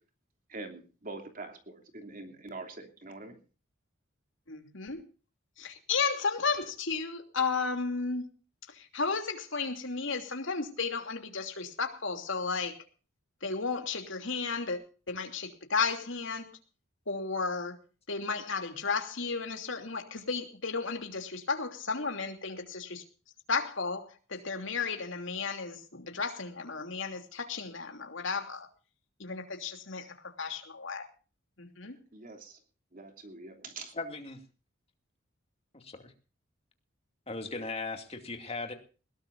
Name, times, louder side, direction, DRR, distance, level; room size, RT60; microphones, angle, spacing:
voice 1, 0.5-3.4 32.1-32.6 32.9-33.9, right 3 dB, 40° right, 5 dB, 3.0 m, -44 dB
voice 2, 4.5-5.0 5.6-8.3 8.9-12.7 13.4-14.8 15.1-16.5 17.1-17.7 18.1-23.0 23.5-28.7 29.2-30.1 30.4-31.1 31.6-32.0, left 4 dB, 65° left, 5 dB, 3.0 m, -33 dB
voice 3, 33.9-34.4 35.7-36.1 37.3-38.7, left 3 dB, 30° left, 5 dB, 2.5 m, -38 dB
20.5 x 17.5 x 2.7 m, 0.36 s
head